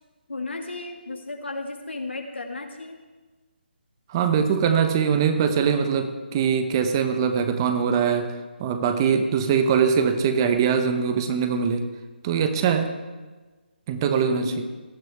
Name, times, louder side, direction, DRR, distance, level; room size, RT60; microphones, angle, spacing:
voice 1, 0.3-3.0 14.3-14.6, left 2 dB, 90° left, 3 dB, 2.2 m, -34 dB
voice 2, 4.1-8.3 8.6-11.9 12.2-12.9 13.9-14.6, right 6 dB, 25° right, 8 dB, 0.9 m, -22 dB
18.0 x 11.0 x 3.6 m, 1.3 s
figure-of-eight pair, 160°, 6 cm